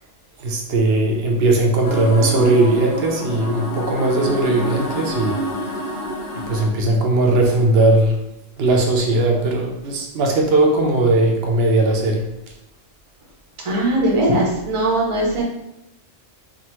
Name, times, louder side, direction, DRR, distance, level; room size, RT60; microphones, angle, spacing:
voice 1, 0.4-5.4 6.5-8.2 8.6-12.3, right 2 dB, 60° right, 1 dB, 0.8 m, -18 dB
sound 1, 1.8-6.7, equal, 55° left, 0.8 m, -27 dB
voice 2, 13.6-15.4, right 1 dB, 30° right, -3 dB, 0.7 m, -19 dB
3.5 x 2.4 x 2.9 m, 0.87 s
omnidirectional pair, 1.3 m